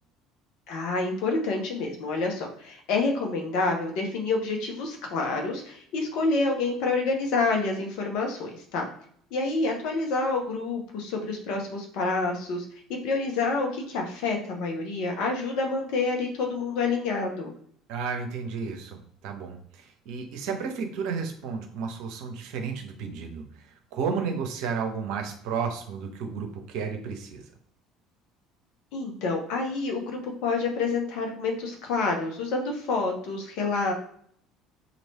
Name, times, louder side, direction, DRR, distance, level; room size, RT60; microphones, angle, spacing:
voice 1, 0.7-8.9 9.3-12.6 12.9-17.5 28.9-33.9, left 3 dB, 60° left, 1 dB, 1.0 m, -28 dB
voice 2, 17.9-23.4 23.9-27.4, right 5 dB, 65° right, 4 dB, 0.8 m, -32 dB
3.1 x 2.8 x 4.1 m, 0.63 s
figure-of-eight pair, 60°, 0 cm